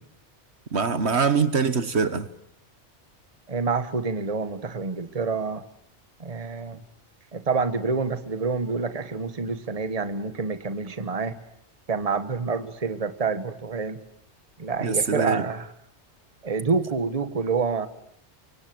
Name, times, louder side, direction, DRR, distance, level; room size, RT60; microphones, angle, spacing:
voice 1, 0.7-2.3 14.8-15.4, right 5 dB, 70° right, 12 dB, 1.6 m, -23 dB
voice 2, 3.5-5.6 6.2-6.8 7.3-11.4 11.9-14.0 14.6-15.7 16.4-17.9, right 4 dB, 35° right, 10 dB, 1.4 m, -27 dB
24.5 x 24.5 x 7.8 m, 0.73 s
omnidirectional pair, 1.2 m